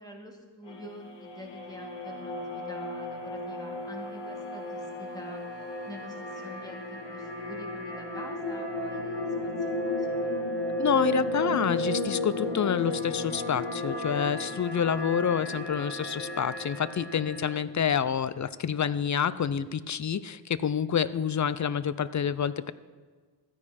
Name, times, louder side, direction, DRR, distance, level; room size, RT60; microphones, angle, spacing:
voice 1, 0.0-5.4 5.9-10.3, left 1 dB, 10° left, 1 dB, 2.4 m, -46 dB
sound 1, 0.7-17.6, left 1 dB, 65° left, 1.5 m, -34 dB
voice 2, 10.8-22.7, left 8 dB, 40° left, 16 dB, 0.5 m, -28 dB
13.5 x 9.6 x 4.2 m, 1.5 s
cardioid pair, 60°, 46 cm